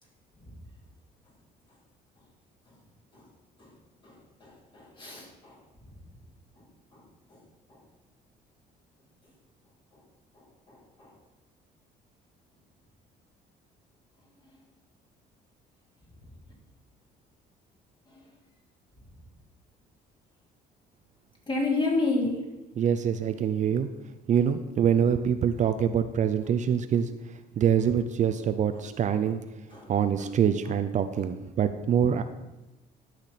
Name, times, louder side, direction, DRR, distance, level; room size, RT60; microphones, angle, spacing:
voice 1, 4.0-5.9 6.6-6.7 6.9-7.0 7.3-7.4 7.7-7.8 10.3-11.1 18.1-18.2 21.5-22.4 29.2-29.3 29.7-29.9 30.2-30.3, left 3 dB, 30° left, -2 dB, 2.9 m, -32 dB
voice 2, 22.8-23.9 24.3-27.1 27.6-29.4 29.9-32.2, right 8 dB, 45° right, 10 dB, 0.5 m, -25 dB
12.0 x 6.0 x 4.2 m, 1.0 s
cardioid pair, 110°, 17 cm